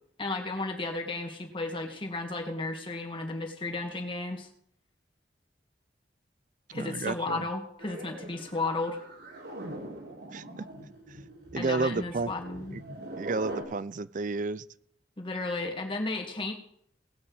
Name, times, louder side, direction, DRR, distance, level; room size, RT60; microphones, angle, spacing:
voice 1, 0.2-4.5 6.7-9.0 11.6-12.8 15.2-16.5, left 2 dB, 30° left, 2 dB, 2.3 m, -33 dB
voice 2, 6.7-7.4 10.3-10.7 11.1-11.2 11.5-12.3 12.7-12.8 13.2-14.6, right 3 dB, 45° right, 17 dB, 0.5 m, -31 dB
sound 1, 7.8-13.6, right 1 dB, 70° right, 4.7 m, -42 dB
19.0 x 6.4 x 8.0 m, 0.67 s
head